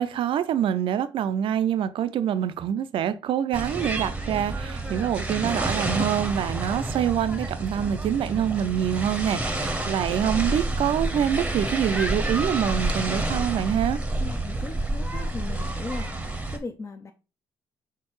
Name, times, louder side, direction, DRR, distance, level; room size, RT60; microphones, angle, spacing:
voice 1, 0.0-14.0, right 9 dB, 60° right, 0.4 m, -25 dB
sound 1, 3.5-16.6, right 2 dB, 15° right, 0.8 m, -29 dB
voice 2, 14.2-17.1, left 3 dB, 30° left, 0.4 m, -38 dB
4.4 x 3.8 x 3.1 m
supercardioid pair, 60°, 10 cm